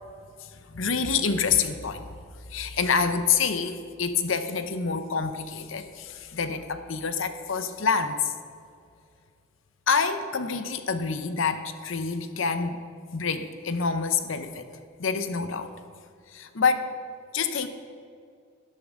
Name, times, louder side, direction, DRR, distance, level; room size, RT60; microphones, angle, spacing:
voice 1, 0.4-2.1 2.5-8.3 9.9-12.8 13.1-15.7 16.3-16.9 17.3-17.7, left 5 dB, 65° left, 9 dB, 0.8 m, -27 dB
11.5 x 11.5 x 3.7 m, 2.3 s
head